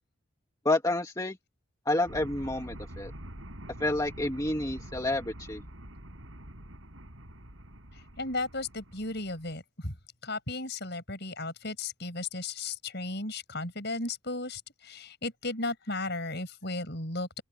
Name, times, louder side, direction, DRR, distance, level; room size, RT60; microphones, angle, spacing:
voice 1, 0.6-1.4 1.9-3.1 3.8-5.6, left 2 dB, 15° left, 2.5 m, -29 dB
sound 1, 2.1-9.5, right 1 dB, 70° right, 5.9 m, -46 dB
voice 2, 8.2-9.9 10.2-17.4, left 2 dB, 50° left, 7.0 m, -35 dB
open air
head